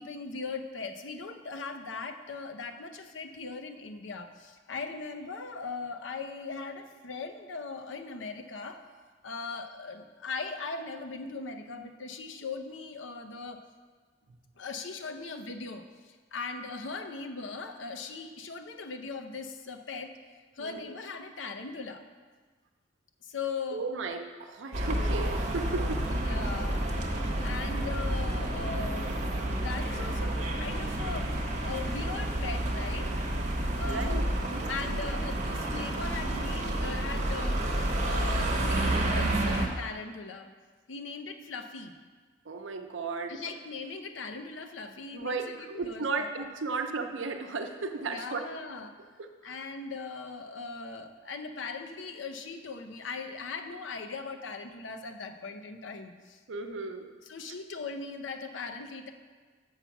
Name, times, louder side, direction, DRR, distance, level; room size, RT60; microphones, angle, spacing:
voice 1, 0.0-8.8 9.2-13.6 14.6-20.2 20.6-22.0 23.2-23.8 26.2-26.9 27.4-29.2 29.5-31.3 31.6-33.1 33.7-34.2 34.7-37.6 38.0-40.5 40.9-41.9 43.3-46.5 48.0-49.0 49.4-56.4 57.3-59.1, left 4 dB, 75° left, 7 dB, 0.7 m, -39 dB
voice 2, 20.6-20.9 23.7-26.0 33.9-34.7 42.5-43.4 45.1-48.5 49.2-49.5 56.5-57.1, right 4 dB, 80° right, 5 dB, 0.7 m, -35 dB
sound 1, 24.7-39.7, right 1 dB, 40° right, 1.0 m, -30 dB
7.2 x 5.7 x 5.8 m, 1.5 s
head